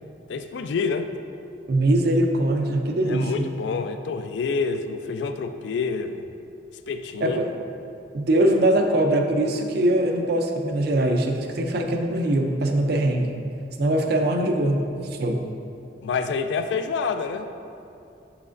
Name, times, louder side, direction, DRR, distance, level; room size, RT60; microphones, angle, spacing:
voice 1, 0.3-1.1 3.1-6.3 6.9-7.5 16.0-17.5, left 5 dB, 75° left, 8 dB, 0.3 m, -27 dB
voice 2, 1.7-3.4 7.2-7.5 8.1-13.4 13.8-15.4, right 1 dB, 60° right, 4 dB, 0.5 m, -22 dB
6.4 x 5.9 x 2.5 m, 2.6 s
head